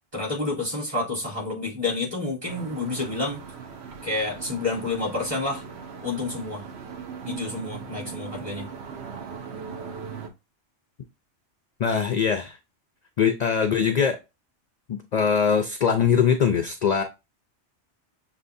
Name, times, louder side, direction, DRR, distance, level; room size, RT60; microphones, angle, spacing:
voice 1, 0.1-3.4 4.0-5.6 6.0-6.6 7.2-8.7, left 3 dB, 30° right, 3.2 m, -29 dB
sound 1, 2.4-10.3, right 6 dB, 65° right, 1.0 m, -39 dB
voice 2, 11.8-12.6 13.2-14.2 14.9-17.0, left 7 dB, 55° left, 0.4 m, -22 dB
6.7 x 2.8 x 2.6 m
omnidirectional pair, 1.2 m